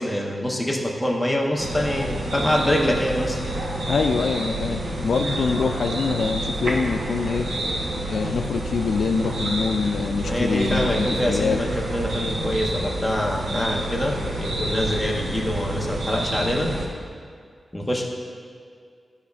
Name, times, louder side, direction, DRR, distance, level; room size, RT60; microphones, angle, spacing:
voice 1, 0.0-3.4 10.2-16.7 17.7-18.1, left 1 dB, 5° left, -2 dB, 0.8 m, -25 dB
sound 1, 1.6-16.9, right 1 dB, 75° right, 1.0 m, -28 dB
voice 2, 3.9-7.5 8.1-11.6, left 5 dB, 75° left, 6 dB, 0.3 m, -25 dB
12.5 x 5.2 x 2.4 m, 2.2 s
wide cardioid pair, 165°, 0 cm